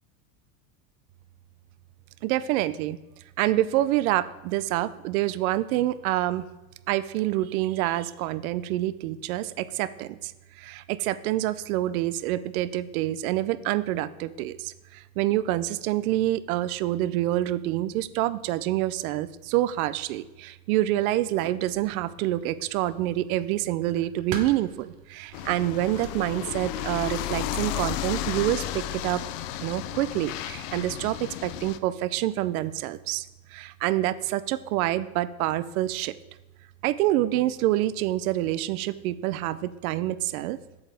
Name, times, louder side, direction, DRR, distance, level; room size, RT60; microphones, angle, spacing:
voice 1, 2.2-3.0 3.4-6.5 6.9-10.3 10.6-29.2 29.6-33.2 33.5-36.1 36.8-40.6, right 15 dB, 75° right, 15 dB, 0.6 m, -27 dB
sound 1, 21.6-27.0, right 6 dB, 55° right, 1.1 m, -44 dB
sound 2, 25.3-31.8, left 13 dB, 65° left, 0.6 m, -33 dB
8.1 x 7.3 x 3.4 m, 1.1 s
supercardioid pair, 140°, 43 cm